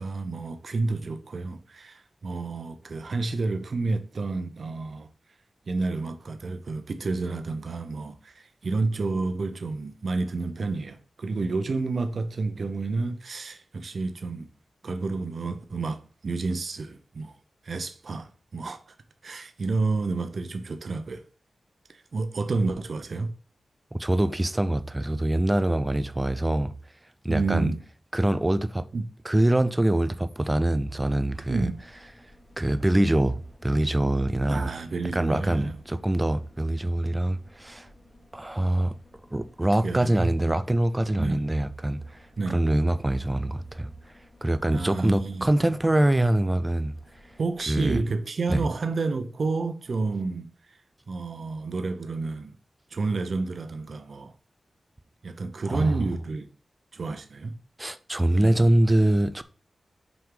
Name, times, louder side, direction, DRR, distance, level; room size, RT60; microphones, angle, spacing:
voice 1, 0.0-5.1 5.7-14.5 14.8-17.4 17.6-18.8 19.2-21.2 21.9-23.3 27.3-27.8 28.9-29.0 31.5-31.8 34.5-35.8 39.8-40.3 41.2-41.4 42.4-42.6 44.7-45.5 47.4-50.5 51.1-52.6 52.9-54.3 55.2-56.5 56.9-57.5 58.3-58.7, right 3 dB, 50° right, 0.7 m, -30 dB
voice 2, 23.9-26.7 27.2-27.7 28.1-28.9 29.2-31.7 32.6-34.7 35.1-37.9 38.3-39.0 39.3-42.2 42.5-43.9 44.4-46.9 47.7-48.0 48.5-48.7 55.7-56.0 57.8-59.4, right 1 dB, 10° right, 0.4 m, -24 dB
sound 1, 31.0-48.3 48.6-48.7, left 1 dB, 15° left, 1.3 m, -56 dB
5.7 x 5.2 x 3.8 m
wide cardioid pair, 170°, 0 cm